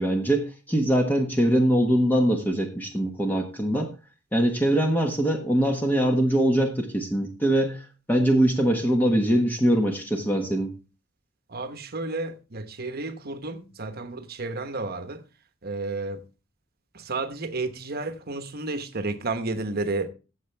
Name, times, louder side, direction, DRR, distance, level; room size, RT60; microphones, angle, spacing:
voice 1, 0.0-3.9 4.3-7.8 8.1-10.7, right 1 dB, 10° left, 1.3 m, -22 dB
voice 2, 11.5-15.2 15.6-16.2 17.0-20.1, right 3 dB, 50° right, 1.1 m, -31 dB
14.5 x 7.8 x 3.4 m
head